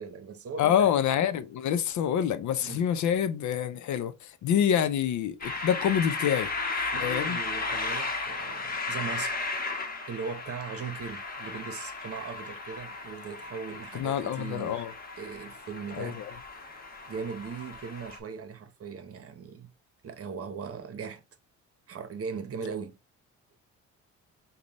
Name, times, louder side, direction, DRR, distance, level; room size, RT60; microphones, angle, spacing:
voice 1, 0.0-0.9 2.6-2.9 6.9-9.5 10.1-14.8 15.2-16.2 17.1-19.7 20.0-21.2 21.9-23.0, right 6 dB, 50° right, 0.9 m, -39 dB
voice 2, 0.6-6.5 7.0-7.4 13.9-14.9 16.0-16.3, left 9 dB, 70° left, 0.6 m, -27 dB
sound 1, 5.4-18.2, left 3 dB, 30° left, 1.1 m, -35 dB
5.2 x 2.3 x 3.0 m
cardioid pair, 90°, 30 cm